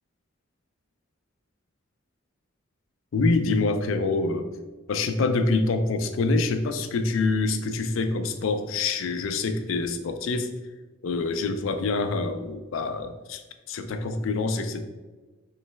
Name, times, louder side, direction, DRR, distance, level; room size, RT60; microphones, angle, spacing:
voice 1, 3.1-4.5 4.9-10.5 11.0-14.8, left 3 dB, 70° left, 8 dB, 0.4 m, -26 dB
3.8 x 3.1 x 3.3 m, 1.2 s
head